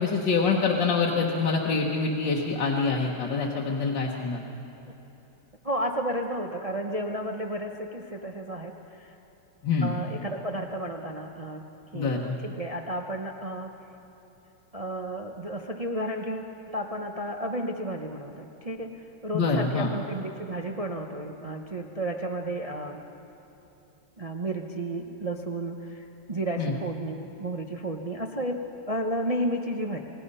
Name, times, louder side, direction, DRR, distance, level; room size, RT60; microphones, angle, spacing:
voice 1, 0.0-4.4 9.6-9.9 11.9-12.4 19.3-19.9 26.6-26.7, left 4 dB, 60° left, -2 dB, 2.0 m, -25 dB
voice 2, 5.6-9.1 9.8-11.6 11.9-13.7 14.7-23.0 24.2-30.0, right 1 dB, 50° right, 3 dB, 0.4 m, -32 dB
28.5 x 19.5 x 5.5 m, 3.0 s
omnidirectional pair, 2.3 m